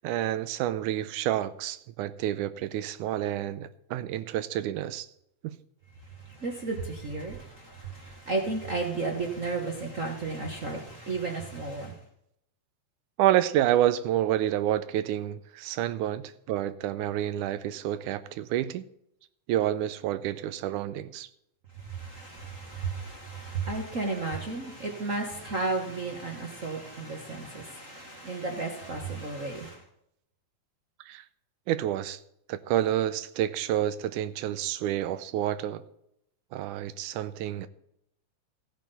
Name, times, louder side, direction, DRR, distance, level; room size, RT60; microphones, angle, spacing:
voice 1, 0.0-5.1 5.4-5.6 13.2-18.8 19.5-21.3 31.1-31.2 31.7-32.2 32.5-35.8 36.5-37.7, right 12 dB, 90° right, 13 dB, 2.1 m, -29 dB
voice 2, 6.0-12.0 21.7-29.8, right 3 dB, 60° right, 1 dB, 0.8 m, -33 dB
16.0 x 9.2 x 4.1 m, 0.77 s
omnidirectional pair, 3.5 m